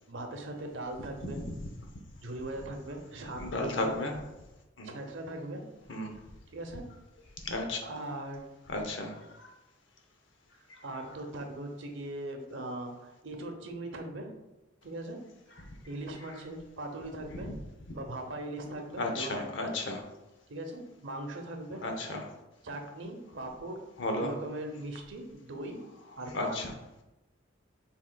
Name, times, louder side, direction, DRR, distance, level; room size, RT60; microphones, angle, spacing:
voice 1, 0.1-1.4 2.2-4.0 4.8-5.6 6.5-6.8 7.8-8.5 10.8-14.3 14.8-15.2 15.5-17.5 17.9-19.8 20.5-21.8 22.6-23.8 24.1-25.8 26.2-26.7, right 1 dB, 70° right, 4 dB, 0.8 m, -40 dB
voice 2, 3.4-4.1 4.8-4.9 5.9-6.1 7.4-7.8 8.7-9.5 19.0-20.0 21.8-22.2 24.0-24.3 26.3-26.7, left 2 dB, 70° left, 3 dB, 0.8 m, -33 dB
6.2 x 3.6 x 2.3 m, 1.0 s
head